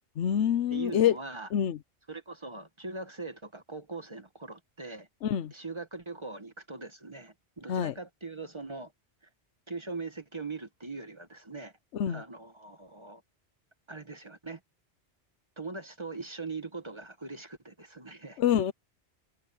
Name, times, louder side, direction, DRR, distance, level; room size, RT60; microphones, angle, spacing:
voice 1, 0.2-1.2 1.5-1.8 5.2-5.5 7.7-7.9 11.9-12.2 18.4-18.7, left 9 dB, 85° left, 1.0 m, -26 dB
voice 2, 0.7-1.5 2.1-5.1 5.5-8.9 9.7-11.7 12.1-13.2 13.9-14.6 15.6-18.4, right 3 dB, 25° right, 1.5 m, -41 dB
omnidirectional pair, 1.1 m